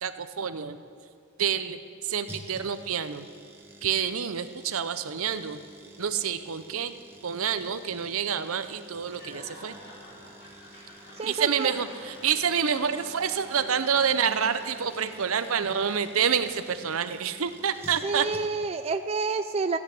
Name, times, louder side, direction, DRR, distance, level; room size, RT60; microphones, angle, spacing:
voice 1, 0.0-0.8 1.4-3.3 3.8-5.6 6.0-6.9 7.2-9.7 11.2-18.3, right 7 dB, 70° right, 11 dB, 0.7 m, -28 dB
sound 1, 2.3-18.8 19.0-19.1, right 1 dB, 10° right, 1.4 m, -50 dB
Laughter / Applause / Crowd, 9.0-16.8, left 1 dB, 50° left, 3.9 m, -49 dB
voice 2, 11.2-11.8 13.6-13.7 18.0-19.8, right 4 dB, 30° right, 8 dB, 0.4 m, -29 dB
15.5 x 8.1 x 8.4 m, 2.4 s
head